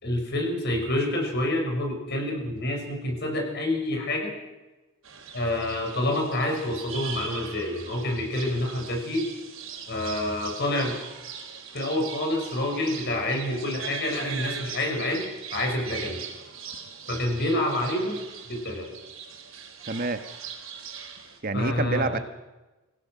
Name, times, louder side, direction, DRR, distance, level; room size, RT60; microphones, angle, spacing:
voice 1, 0.0-4.3 5.3-9.3 9.9-11.0 11.7-15.2 15.5-16.2 17.1-18.2 18.5-18.9 21.5-22.2, left 1 dB, 55° left, 2 dB, 6.2 m, -27 dB
sound 1, 5.0-21.4, right 7 dB, 80° right, 3.9 m, -40 dB
voice 2, 19.9-20.2 21.4-22.2, right 3 dB, 45° right, 9 dB, 1.2 m, -27 dB
26.5 x 16.5 x 6.2 m, 1.1 s
head